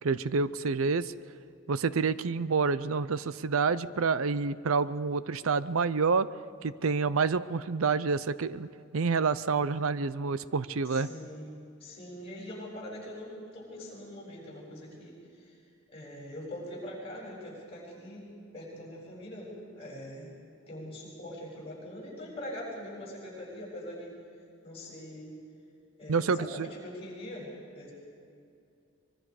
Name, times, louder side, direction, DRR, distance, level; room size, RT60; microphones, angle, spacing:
voice 1, 0.0-1.1 1.7-6.3 6.6-8.7 8.9-11.1 26.1-26.7, right 5 dB, 70° right, 16 dB, 0.6 m, -28 dB
voice 2, 10.9-11.5 11.8-15.5 15.9-18.2 18.5-20.3 20.7-24.2 24.6-25.3 26.0-27.5 27.7-27.9, left 1 dB, 25° left, -4 dB, 7.1 m, -42 dB
24.5 x 22.5 x 4.9 m, 2.5 s
head